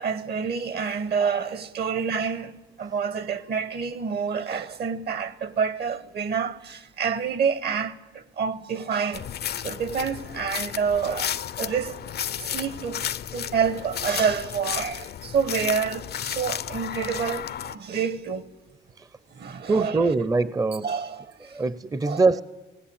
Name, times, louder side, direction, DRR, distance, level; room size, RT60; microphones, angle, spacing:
voice 1, 0.0-9.3 9.5-12.0 12.4-18.4 19.3-20.1 20.8-21.6 22.0-22.3, right 6 dB, 55° right, 1.2 m, -28 dB
sound 1, 9.1-17.7, left 9 dB, 55° left, 0.6 m, -33 dB
voice 2, 19.7-20.9 21.5-22.4, right 3 dB, 15° right, 0.6 m, -23 dB
18.5 x 17.5 x 8.8 m
cardioid pair, 90°, 20 cm